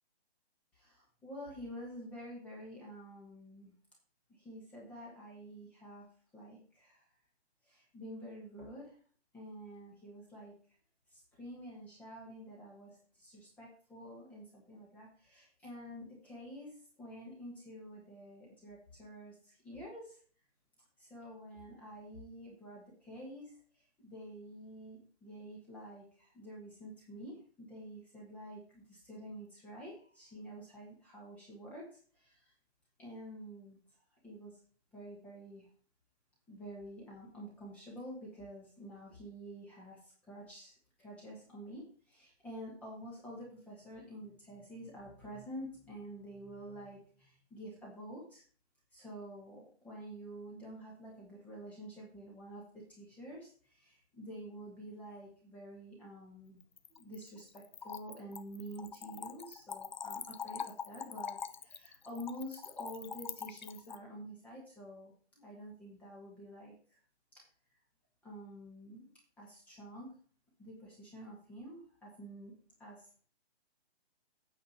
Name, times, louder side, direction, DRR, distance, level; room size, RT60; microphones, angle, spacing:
voice 1, 0.7-3.7 4.3-6.0 6.3-7.0 7.6-9.0 9.3-10.5 11.1-20.2 21.0-32.5 33.0-33.8 34.2-34.6 34.9-35.7 36.5-48.4 48.9-56.6 56.9-67.0 68.2-69.1 69.4-70.1 70.6-72.5 72.8-73.1, equal, 5° left, -5 dB, 1.3 m, -49 dB
Splash splatter / Trickle dribble, 56.6-64.0, left 7 dB, 45° left, 0.7 m, -44 dB
8.8 x 4.8 x 7.2 m, 0.43 s
hypercardioid pair, 170°, 33 cm